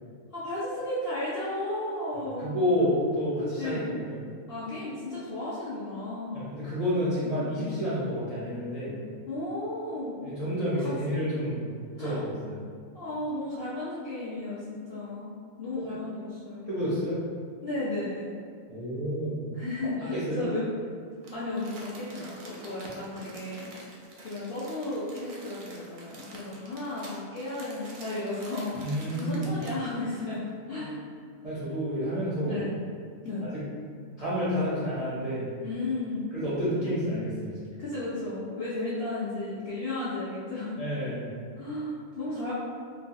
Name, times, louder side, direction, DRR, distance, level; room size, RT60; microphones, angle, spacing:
voice 1, 0.3-2.5 3.6-3.9 4.5-6.5 7.2-7.3 9.3-10.2 10.7-11.2 12.0-12.2 12.9-16.7 17.6-18.3 19.5-20.7 21.3-23.7 24.2-28.8 29.1-31.0 32.4-32.8 33.2-33.4 35.6-36.3 37.8-40.8 41.6-42.5, left 2 dB, 65° left, -10 dB, 0.6 m, -34 dB
voice 2, 2.4-4.2 6.3-9.0 10.2-11.7 12.0-12.6 16.7-17.2 18.7-19.4 20.1-20.5 28.8-29.5 31.4-32.6 33.4-33.6 34.2-35.5 36.3-37.7 40.8-41.3, equal, 50° right, -12 dB, 0.4 m, -29 dB
Crumpling crinkling, 21.2-29.9 30.3-30.4, right 2 dB, 85° right, 1.1 m, -47 dB
3.1 x 2.1 x 2.6 m, 2.1 s
omnidirectional pair, 1.5 m